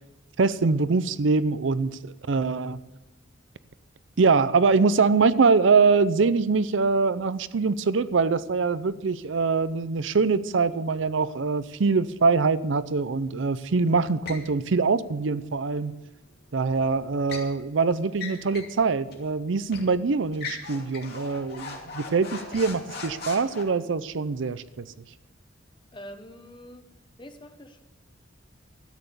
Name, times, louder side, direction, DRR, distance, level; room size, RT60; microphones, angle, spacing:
voice 1, 0.4-2.8 4.2-16.0 16.5-24.9, right 4 dB, 65° right, 16 dB, 0.5 m, -23 dB
sound 1, 14.3-14.5 16.7-17.5 18.1-18.8 19.1-19.2 19.7-19.9 20.3-23.6, left 4 dB, 50° left, 2.6 m, -39 dB
voice 2, 25.9-26.9 27.2-27.8, equal, 25° left, 7 dB, 1.0 m, -44 dB
13.0 x 9.1 x 6.7 m, 1.1 s
head